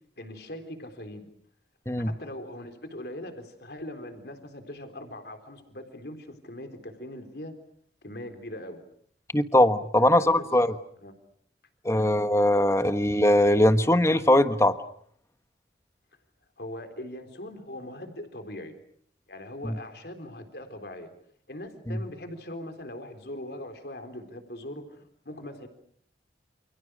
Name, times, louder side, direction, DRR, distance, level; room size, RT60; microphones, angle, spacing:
voice 1, 0.2-1.3 2.0-7.5 8.0-8.8 10.0-10.5 11.0-11.1 11.9-12.1 16.6-18.7 19.3-21.1 21.5-25.7, left 1 dB, 65° left, 7 dB, 3.9 m, -41 dB
voice 2, 9.3-10.7 11.8-14.8 19.6-19.7 21.9-22.0, left 1 dB, 15° left, 10 dB, 1.2 m, -21 dB
29.0 x 28.5 x 6.4 m, 0.64 s
head